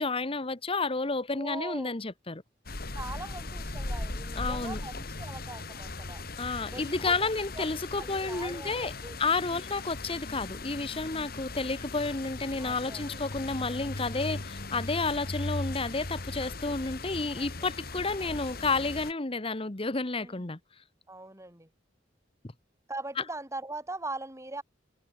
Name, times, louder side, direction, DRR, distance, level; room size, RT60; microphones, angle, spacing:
voice 1, 0.0-2.4 4.4-4.8 6.4-8.9 9.2-20.6, left 3 dB, 30° left, 1.1 m, -31 dB
voice 2, 1.3-2.0 2.9-6.2 6.7-7.3 7.5-7.6 7.9-9.2 9.5-9.7 12.6-13.2 17.4-17.7 18.2-18.6 20.2-20.4 21.1-21.7 22.9-24.6, right 2 dB, 15° right, 6.3 m, -41 dB
sound 1, 2.7-19.1, left 2 dB, 55° left, 2.4 m, -38 dB
head